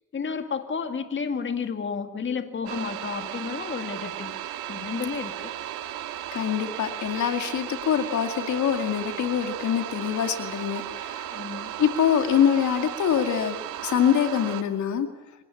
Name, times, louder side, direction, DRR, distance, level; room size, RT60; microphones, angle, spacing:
voice 1, 0.1-4.3 4.7-5.5 11.3-11.7, left 5 dB, 40° left, 8 dB, 2.4 m, -31 dB
sound 1, 2.7-14.6, right 12 dB, 90° right, 2.2 m, -35 dB
voice 2, 6.3-11.2 11.8-13.6 13.8-15.1, left 8 dB, 70° left, 7 dB, 2.4 m, -24 dB
26.5 x 18.5 x 8.5 m, 0.94 s
cardioid pair, 90°, 30 cm